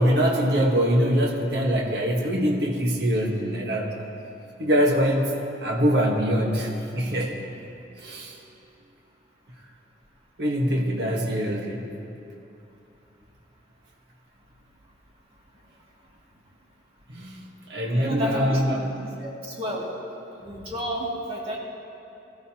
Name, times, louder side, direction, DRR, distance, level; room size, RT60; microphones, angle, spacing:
voice 1, 0.0-4.0 4.6-5.3 5.6-7.4 8.0-8.4 10.4-11.9 17.1-17.4 17.7-18.9, equal, 60° right, -1 dB, 1.4 m, -23 dB
voice 2, 17.9-18.6 19.2-19.8 20.4-21.6, equal, 30° right, -5 dB, 2.3 m, -30 dB
20.0 x 14.5 x 2.9 m, 2.8 s
head